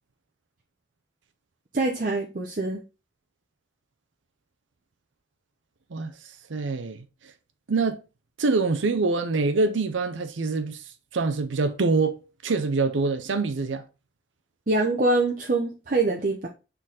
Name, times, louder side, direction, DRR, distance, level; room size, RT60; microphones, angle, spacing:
voice 1, 1.7-2.8 14.7-16.5, right 2 dB, 45° right, 0.7 m, -24 dB
voice 2, 5.9-7.0 7.7-8.0 8.4-13.8, right 3 dB, 85° right, 0.6 m, -25 dB
6.4 x 4.0 x 3.9 m
head